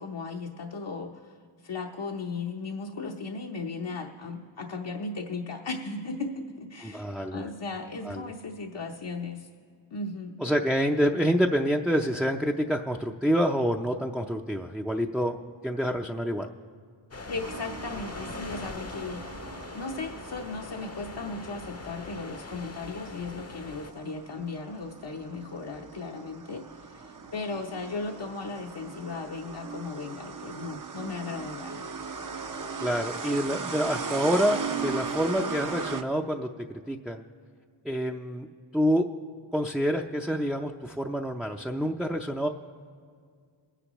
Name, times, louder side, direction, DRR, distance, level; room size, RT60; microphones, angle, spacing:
voice 1, 0.0-9.5 9.9-10.4 17.3-19.5 19.7-31.9, left 3 dB, 65° left, 1 dB, 0.9 m, -36 dB
voice 2, 6.8-7.4 8.0-8.2 10.4-15.4 15.6-16.5 32.8-37.2 37.8-38.5 38.7-39.1 39.5-42.5, equal, ahead, 1 dB, 0.5 m, -27 dB
sound 1, 17.1-23.9, left 3 dB, 30° left, 0.7 m, -42 dB
sound 2, 17.4-36.0, right 5 dB, 45° right, 0.7 m, -38 dB
22.5 x 10.0 x 3.1 m, 2.1 s
cardioid pair, 40°, 47 cm